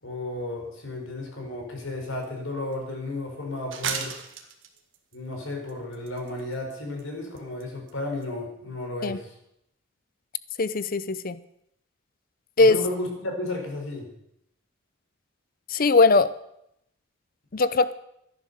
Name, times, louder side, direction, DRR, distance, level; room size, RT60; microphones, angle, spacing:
voice 1, 0.0-4.1 5.1-9.3 12.6-14.1, left 2 dB, 75° left, 1 dB, 4.7 m, -33 dB
sound 1, 2.2-2.3 2.7-2.8 3.7-5.2 5.7-6.7 7.0-7.1 7.4-7.6 7.9-8.0 8.2-8.3, right 6 dB, 70° right, 2.0 m, -34 dB
voice 2, 10.6-11.4 12.6-12.8 15.7-16.3 17.5-17.9, left 3 dB, 45° left, 15 dB, 0.6 m, -20 dB
14.0 x 10.5 x 6.8 m, 0.78 s
head